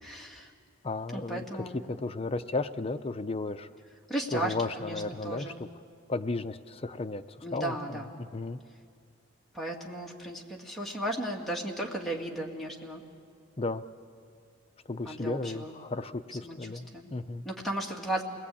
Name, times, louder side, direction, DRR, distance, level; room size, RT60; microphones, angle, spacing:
voice 1, 0.0-0.5 1.1-1.8 4.1-5.6 7.4-8.1 9.5-13.0 15.0-15.8 16.4-17.1 17.4-18.2, right 1 dB, ahead, -2 dB, 2.3 m, -35 dB
voice 2, 0.8-1.4 1.9-3.7 4.3-5.7 6.1-8.6 13.6-13.8 14.9-17.5, left 3 dB, 30° left, 10 dB, 0.6 m, -34 dB
28.5 x 19.5 x 8.6 m, 2.3 s
head